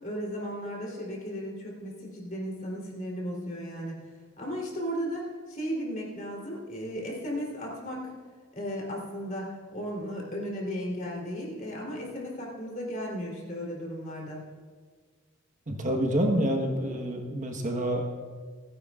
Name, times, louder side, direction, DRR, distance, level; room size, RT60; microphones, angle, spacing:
voice 1, 0.0-4.0 4.4-8.1 8.5-14.4, equal, 40° left, -3 dB, 3.5 m, -35 dB
voice 2, 15.7-18.0, right 1 dB, 35° right, 2 dB, 1.3 m, -27 dB
28.5 x 10.0 x 2.5 m, 1.6 s
head